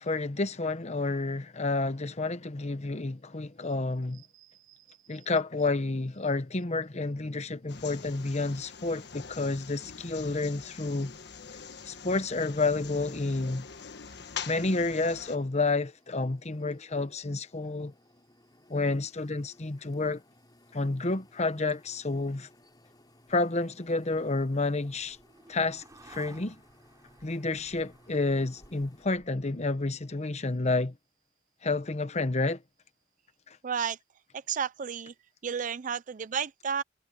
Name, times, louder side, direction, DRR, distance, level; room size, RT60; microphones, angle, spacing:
voice 1, 0.0-4.2 5.1-11.1 11.9-13.7 14.5-17.9 18.7-20.2 20.7-22.5 23.3-25.2 25.5-26.6 27.2-30.9 31.6-32.6 33.5-33.6, left 3 dB, 40° left, 1.0 m, -30 dB
voice 2, 4.4-5.2 33.6-34.0 34.3-35.1 35.4-36.8, right 7 dB, 45° right, 0.5 m, -33 dB
sound 1, 7.7-15.4, left 6 dB, 65° left, 1.5 m, -44 dB
sound 2, 14.4-29.1, left 1 dB, 20° left, 7.1 m, -62 dB
sound 3, 22.7-30.1, right 2 dB, 20° right, 4.3 m, -57 dB
head